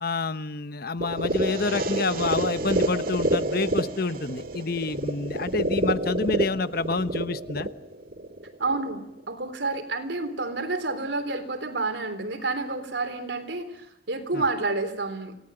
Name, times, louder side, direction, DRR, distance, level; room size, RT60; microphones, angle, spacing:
voice 1, 0.0-7.7 14.3-14.4, left 3 dB, 55° left, 13 dB, 1.0 m, -28 dB
sound 1, 1.0-9.0, right 1 dB, 55° right, 1.9 m, -28 dB
voice 2, 8.6-15.4, right 3 dB, 75° right, 8 dB, 3.8 m, -29 dB
28.5 x 18.5 x 9.0 m, 0.81 s
head